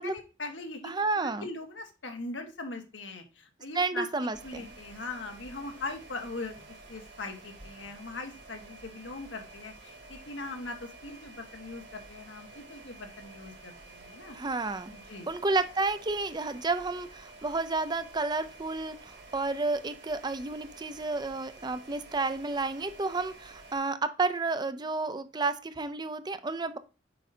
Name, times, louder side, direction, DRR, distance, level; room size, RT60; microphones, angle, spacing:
voice 1, 0.0-4.1 4.4-14.4 14.9-15.3, left 2 dB, 85° left, 5 dB, 1.4 m, -41 dB
voice 2, 0.8-1.5 3.7-4.7 14.3-14.9 15.3-26.8, right 3 dB, 25° right, 11 dB, 0.5 m, -31 dB
sound 1, 4.3-23.8, right 2 dB, 65° right, 2.7 m, -50 dB
7.5 x 5.3 x 2.7 m, 0.31 s
head